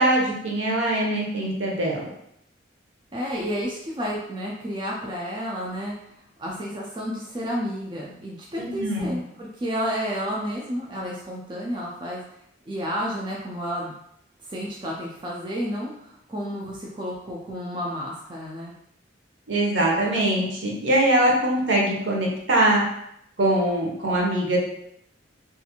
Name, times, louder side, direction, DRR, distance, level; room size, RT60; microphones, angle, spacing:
voice 1, 0.0-2.1 8.6-9.2 19.5-22.8 23.4-24.6, right 1 dB, 65° right, -2 dB, 0.7 m, -22 dB
voice 2, 3.1-5.9 6.4-12.2 12.7-13.9 14.4-18.7, equal, 25° right, -4 dB, 0.3 m, -31 dB
2.5 x 2.4 x 2.8 m, 0.76 s
head